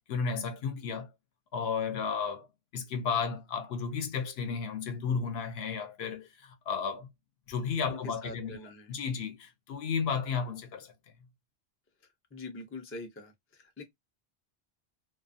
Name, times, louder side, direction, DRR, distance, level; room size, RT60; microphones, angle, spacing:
voice 1, 0.1-1.1 1.5-2.5 2.7-7.1 7.5-8.5 8.9-10.9, left 6 dB, 70° left, 0.8 m, -33 dB
voice 2, 7.9-8.9 12.3-13.8, left 3 dB, 25° left, 0.3 m, -44 dB
2.4 x 2.2 x 2.5 m
omnidirectional pair, 1.1 m